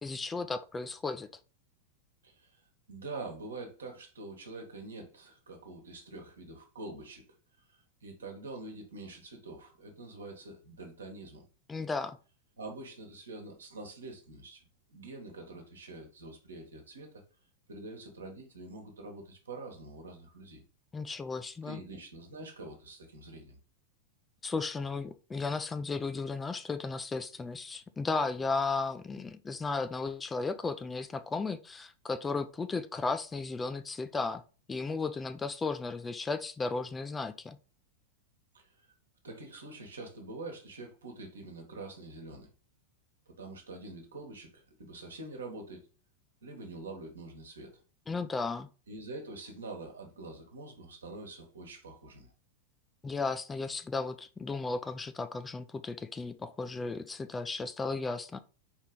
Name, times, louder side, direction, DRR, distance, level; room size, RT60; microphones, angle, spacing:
voice 1, 0.0-1.3 11.7-12.2 20.9-21.8 24.4-34.4 34.7-37.6 48.1-48.7 53.0-58.4, left 4 dB, 15° left, 0.3 m, -35 dB
voice 2, 2.9-7.2 8.0-11.4 12.6-14.6 14.9-17.2 17.7-20.6 21.6-23.6 38.5-38.9 39.2-42.5 43.3-45.8 46.4-47.7 48.9-52.3, right 2 dB, 70° right, 1.2 m, -45 dB
4.4 x 3.2 x 3.7 m
figure-of-eight pair, 90°, 0 cm